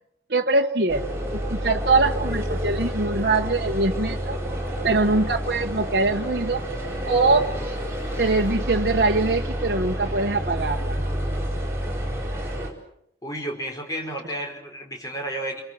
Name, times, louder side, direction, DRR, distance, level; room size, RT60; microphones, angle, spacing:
voice 1, 0.3-4.4 4.8-6.6 7.1-7.5 8.2-11.0, right 3 dB, 60° right, 0 dB, 1.3 m, -23 dB
sound 1, 0.9-12.7, equal, 15° right, 4.5 m, -29 dB
sound 2, 4.0-8.6, equal, 90° left, 3.0 m, -44 dB
voice 2, 13.2-15.6, right 1 dB, 20° left, 1 dB, 5.0 m, -32 dB
28.5 x 23.5 x 6.1 m, 0.76 s
head